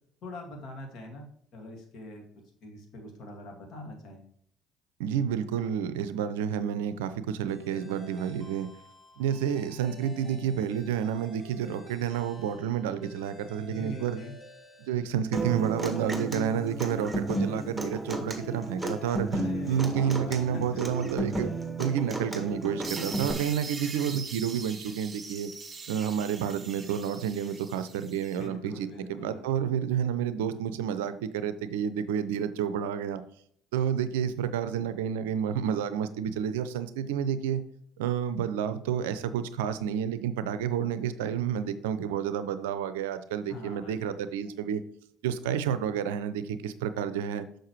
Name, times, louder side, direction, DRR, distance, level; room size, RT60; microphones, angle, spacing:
voice 1, 0.2-2.2 2.6-4.2 13.7-14.4 19.3-20.8 28.4-29.4 43.5-44.1, left 1 dB, 60° left, 2 dB, 2.0 m, -43 dB
voice 2, 5.0-8.7 9.2-14.2 14.9-21.5 21.8-25.5 25.9-33.2 33.7-37.6 38.0-44.8 45.2-47.5, right 8 dB, 80° right, 13 dB, 0.5 m, -30 dB
sound 1, 7.5-15.6, equal, 20° left, 2.7 m, -51 dB
Human voice / Acoustic guitar, 15.3-23.3, right 2 dB, 5° right, 1.8 m, -33 dB
sound 2, 22.8-28.4, right 4 dB, 30° right, 1.4 m, -42 dB
6.5 x 6.3 x 3.1 m, 0.67 s
hypercardioid pair, 55°, 0 cm